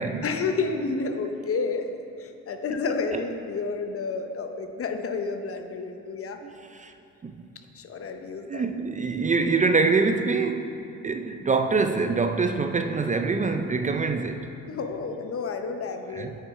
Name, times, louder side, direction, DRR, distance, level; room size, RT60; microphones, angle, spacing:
voice 1, 0.2-1.9 2.2-6.4 7.7-8.6 14.7-16.4, left 4 dB, 50° left, 6 dB, 0.8 m, -30 dB
voice 2, 6.4-6.9 7.2-7.4 8.5-10.8 11.0-14.5 16.1-16.3, right 4 dB, 25° right, 7 dB, 0.4 m, -25 dB
9.3 x 6.2 x 4.8 m, 2.6 s
cardioid pair, 90°, 30 cm